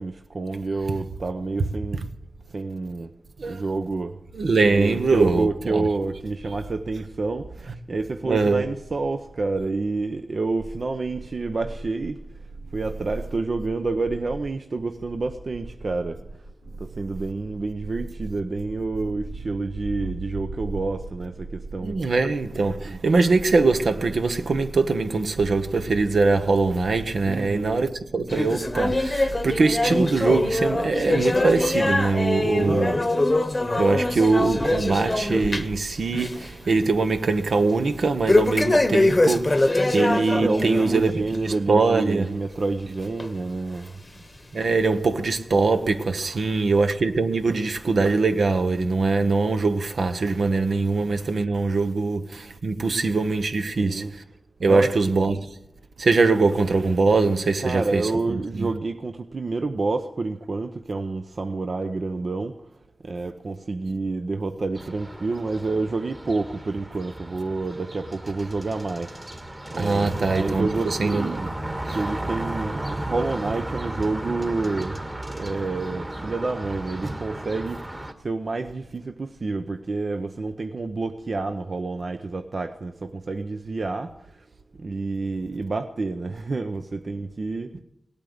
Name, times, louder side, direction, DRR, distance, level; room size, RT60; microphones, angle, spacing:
voice 1, 0.0-2.0 2.5-3.1 3.4-4.2 4.7-12.2 12.7-16.2 16.8-22.0 22.8-23.0 27.3-27.9 32.6-33.0 40.4-44.0 53.8-54.1 54.7-54.9 57.6-62.7 63.0-69.4 69.7-71.5 71.9-84.5 84.8-87.8, right 3 dB, 55° right, 0.7 m, -28 dB
voice 2, 4.3-5.9 8.2-8.7 21.8-33.0 33.8-42.3 44.5-54.2 54.6-55.6 56.0-58.7 63.9-64.0 69.7-71.3 71.9-72.0 87.7-87.8, right 3 dB, 75° right, 1.0 m, -22 dB
sound 1, 28.3-35.8 36.1-36.5 36.8-36.9 38.3-40.9 41.3-41.5 42.2-42.3 43.2-43.3 44.1-44.2, left 2 dB, 30° left, 0.9 m, -23 dB
sound 2, 64.8-78.1, right 1 dB, 25° right, 1.8 m, -34 dB
17.5 x 8.7 x 7.9 m
cardioid pair, 60°, 0 cm